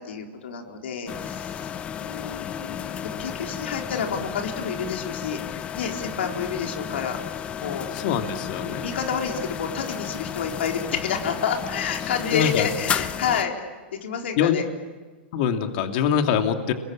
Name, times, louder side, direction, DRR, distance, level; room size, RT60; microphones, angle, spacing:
voice 1, 0.0-7.2 7.6-7.9 8.6-13.6 13.9-14.6, left 7 dB, 85° left, 2 dB, 4.1 m, -29 dB
sound 1, 1.1-13.4, left 8 dB, 20° left, 0.9 m, -33 dB
voice 2, 7.9-8.9 12.3-12.7 14.4-14.6 15.3-16.7, left 8 dB, 50° left, 5 dB, 2.7 m, -23 dB
29.5 x 22.0 x 8.7 m, 1.3 s
supercardioid pair, 150°, 6 cm